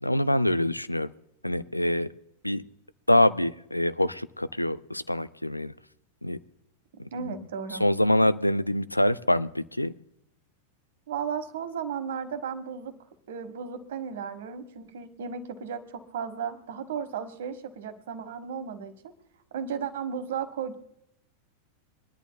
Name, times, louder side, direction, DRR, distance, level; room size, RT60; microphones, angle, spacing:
voice 1, 0.0-1.1 1.4-2.1 2.4-2.6 3.1-5.7 6.2-6.4 7.0-7.3 7.7-9.9, left 1 dB, 85° left, 15 dB, 0.4 m, -25 dB
voice 2, 7.1-7.8 11.1-12.9 13.3-19.1 19.5-20.8, right 7 dB, 60° right, 9 dB, 1.4 m, -35 dB
25.0 x 11.0 x 2.3 m, 0.80 s
figure-of-eight pair, 90°, 0 cm